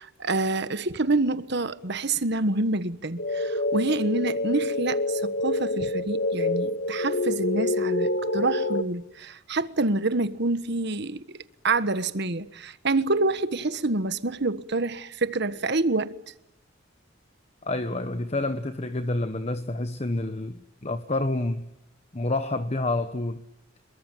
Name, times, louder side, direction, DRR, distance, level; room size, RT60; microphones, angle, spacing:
voice 1, 0.0-16.2, right 2 dB, 60° right, 1.4 m, -27 dB
sound 1, 3.2-8.8, left 2 dB, 60° left, 1.4 m, -27 dB
voice 2, 17.6-21.7 22.1-23.4, left 2 dB, 35° left, 1.1 m, -28 dB
27.0 x 23.0 x 9.2 m
head